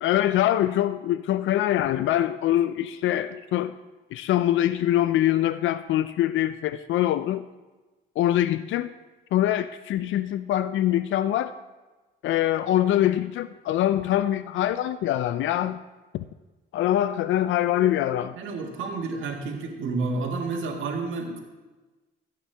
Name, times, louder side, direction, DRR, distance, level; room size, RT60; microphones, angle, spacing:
voice 1, 0.0-3.8 4.1-7.4 8.2-8.9 9.3-11.5 12.2-15.8 16.1-16.2 16.7-18.3, left 12 dB, 75° left, 13 dB, 0.4 m, -24 dB
voice 2, 18.4-21.4, right 3 dB, 80° right, 2 dB, 1.8 m, -30 dB
15.0 x 8.6 x 3.4 m, 1.2 s
cardioid pair, 90°, 20 cm